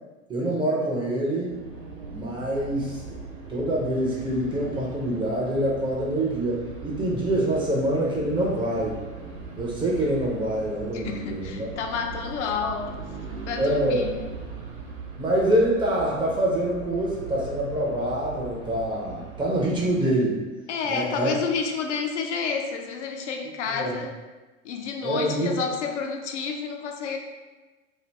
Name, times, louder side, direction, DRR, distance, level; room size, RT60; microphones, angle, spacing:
voice 1, 0.3-1.5 2.1-3.2 3.5-9.0 9.6-11.7 13.6-14.1 15.2-20.4 20.9-21.3 23.7-23.9 25.0-25.6, right 1 dB, 10° right, -4 dB, 0.4 m, -25 dB
sound 1, 1.4-20.1, right 5 dB, 85° right, 0.8 m, -39 dB
voice 2, 10.9-13.0 13.5-14.1 20.7-24.1 24.6-27.2, left 5 dB, 60° left, 3 dB, 0.5 m, -30 dB
2.7 x 2.6 x 3.2 m, 1.2 s
figure-of-eight pair, 85°, 41 cm